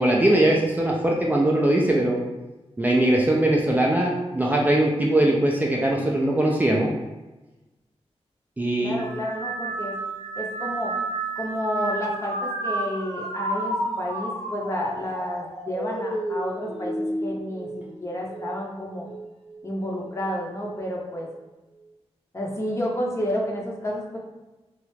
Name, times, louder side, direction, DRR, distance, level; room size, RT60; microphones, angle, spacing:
voice 1, 0.0-2.2 2.8-6.9 8.6-9.0, right 1 dB, 15° right, -2 dB, 0.3 m, -21 dB
voice 2, 8.8-9.9 10.4-10.9 11.4-19.1 19.6-21.3 22.3-24.2, equal, 25° left, -2 dB, 0.6 m, -30 dB
sound 1, 9.0-18.6 19.0-19.6 20.6-20.9, right 2 dB, 90° right, 0.8 m, -31 dB
3.1 x 2.4 x 3.2 m, 1.1 s
wide cardioid pair, 140°, 11 cm